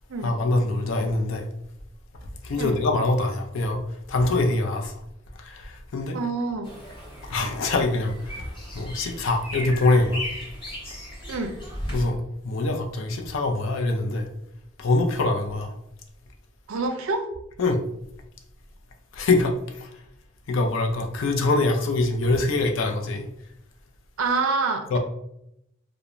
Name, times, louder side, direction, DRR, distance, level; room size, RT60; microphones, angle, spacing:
voice 1, 0.2-1.5 2.4-3.8 4.1-5.0 5.4-6.2 7.3-8.5 8.7-10.2 11.9-12.2 12.4-14.3 14.8-15.8 17.6-17.8 19.1-20.0 20.5-23.3 24.9-25.0, left 2 dB, 65° left, 0.4 m, -24 dB
voice 2, 6.1-6.8 11.3-11.5 16.7-17.3 24.2-25.0, right 3 dB, 75° right, 0.5 m, -26 dB
sound 1, 6.6-12.0, equal, 25° left, 0.7 m, -36 dB
2.4 x 2.0 x 3.0 m
head